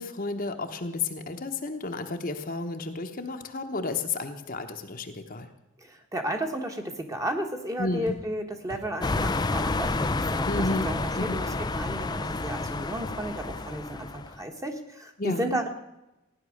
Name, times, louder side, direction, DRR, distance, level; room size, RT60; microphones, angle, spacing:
voice 1, 0.0-5.5 7.8-8.1 10.4-11.4 15.2-15.5, left 3 dB, 40° left, 5 dB, 1.0 m, -32 dB
voice 2, 5.8-10.5 10.8-15.7, right 1 dB, 15° right, 4 dB, 1.2 m, -33 dB
sound 1, 8.0-8.2 8.7-8.9 9.3-9.5 9.9-10.2 10.4-10.9 11.2-11.3 11.8-12.1 12.5-12.7, left 1 dB, 75° right, 4.5 m, -43 dB
sound 2, 9.0-14.4, left 3 dB, 20° left, 0.4 m, -29 dB
16.0 x 10.0 x 6.4 m, 0.95 s
head